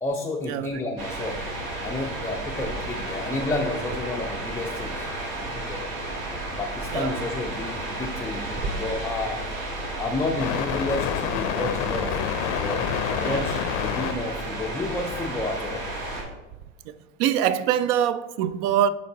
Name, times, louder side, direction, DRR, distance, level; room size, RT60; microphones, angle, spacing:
voice 1, 0.0-1.4 1.8-5.1 5.4-5.8 6.6-9.4 10.0-15.8, left 2 dB, 5° left, 0.4 m, -31 dB
sound 1, 1.0-16.2, right 1 dB, 80° right, 1.9 m, -32 dB
sound 2, 10.4-14.1 14.4-15.9, left 11 dB, 60° left, 0.6 m, -28 dB
voice 2, 17.2-18.9, right 10 dB, 55° right, 0.5 m, -23 dB
11.0 x 3.8 x 2.9 m
hypercardioid pair, 90°, 41 cm